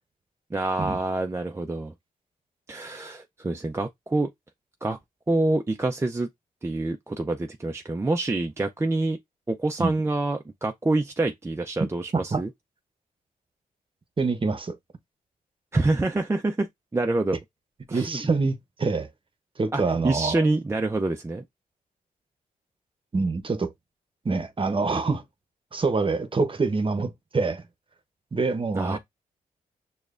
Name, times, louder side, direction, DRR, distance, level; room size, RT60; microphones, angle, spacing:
voice 1, 0.5-1.9 2.7-4.3 4.8-5.0 5.3-6.3 6.6-9.2 9.5-12.5 15.7-16.7 16.9-17.4 17.9-18.1 19.7-21.4 28.7-29.0, right 2 dB, 15° right, 0.4 m, -26 dB
voice 2, 14.2-14.8 17.9-19.1 19.6-20.4 23.1-23.7 24.2-25.2 25.7-27.6 28.3-29.0, right 4 dB, 35° right, 0.8 m, -25 dB
6.5 x 2.3 x 2.4 m
supercardioid pair, 55°, 16 cm